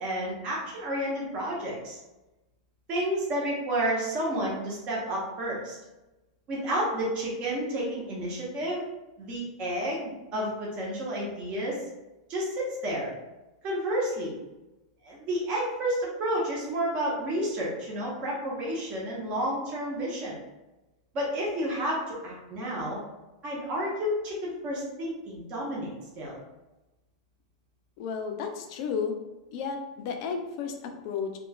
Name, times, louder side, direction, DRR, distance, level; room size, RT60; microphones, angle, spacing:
voice 1, 0.0-2.0 2.9-5.8 6.5-8.8 9.2-11.9 12.3-13.1 13.6-14.4 15.0-20.4 21.1-23.0 23.4-26.4, equal, 30° right, -4 dB, 0.7 m, -31 dB
voice 2, 28.0-29.2 29.5-31.4, left 6 dB, 45° left, 4 dB, 0.4 m, -33 dB
3.0 x 2.1 x 2.3 m, 1.0 s
supercardioid pair, 155°, 4 cm